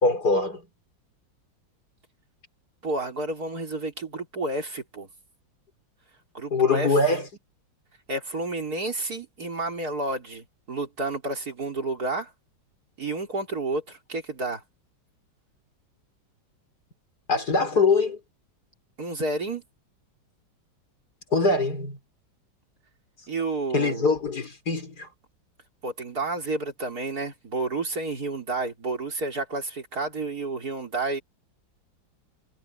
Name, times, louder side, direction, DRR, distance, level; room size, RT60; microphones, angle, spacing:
voice 1, 0.0-0.6 6.5-7.3 17.3-18.2 21.3-22.0 23.7-25.1, left 3 dB, 55° left, 4.8 m, -23 dB
voice 2, 2.8-5.1 6.3-6.9 8.1-12.3 13.0-14.6 19.0-19.6 23.3-24.1 25.8-31.2, right 2 dB, 50° right, 4.3 m, -30 dB
omnidirectional pair, 2.1 m